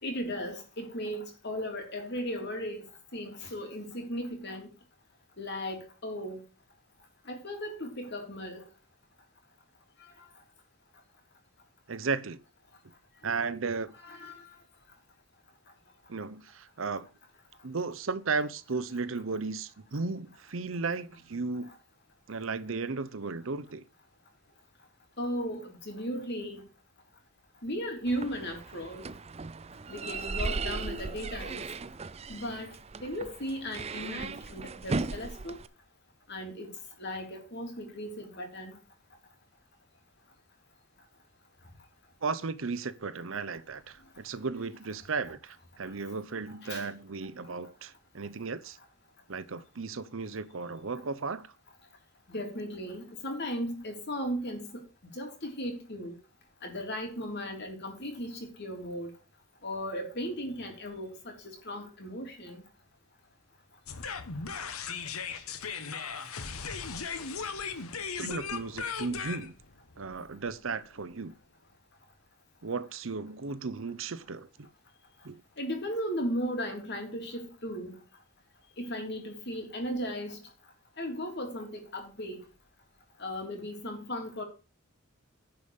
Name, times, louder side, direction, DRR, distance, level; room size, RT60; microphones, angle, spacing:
voice 1, 0.0-2.8 3.1-4.7 5.4-6.4 7.3-8.7 14.0-14.5 25.2-26.6 27.6-29.1 29.9-31.7 32.3-32.7 33.0-35.6 36.3-38.8 46.5-46.9 52.3-54.7 55.1-56.1 56.6-59.1 59.6-62.6 75.6-78.0 78.8-80.4 81.0-82.4 83.2-84.4, equal, 50° left, 3.3 m, -36 dB
voice 2, 11.9-12.4 13.2-13.9 16.1-17.1 17.6-21.7 22.3-23.9 42.2-48.8 49.3-51.5 68.2-69.5 70.0-71.3 72.6-74.7 75.2-75.4, right 4 dB, 65° right, 0.7 m, -35 dB
sound 1, 28.1-35.7, right 3 dB, 30° right, 0.5 m, -37 dB
sound 2, 63.9-71.0, left 5 dB, 90° left, 1.2 m, -37 dB
10.5 x 5.3 x 7.0 m
head